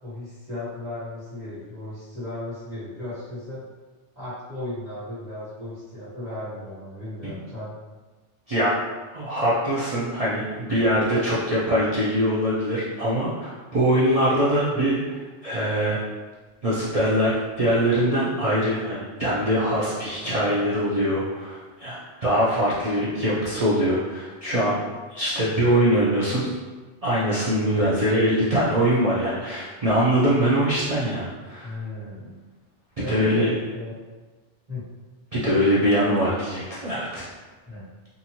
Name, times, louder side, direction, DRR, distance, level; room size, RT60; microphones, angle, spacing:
voice 1, 0.0-3.6 4.1-7.7 31.6-32.4 33.0-34.0 34.7-34.9 35.4-35.8 37.6-37.8, left 1 dB, 35° right, -14 dB, 1.3 m, -35 dB
voice 2, 8.5-8.8 9.1-16.0 16.6-24.8 25.1-26.4 27.0-31.7 33.1-33.5 35.3-37.2, equal, 65° right, -8 dB, 0.3 m, -23 dB
2.8 x 2.6 x 2.8 m, 1.3 s
omnidirectional pair, 1.3 m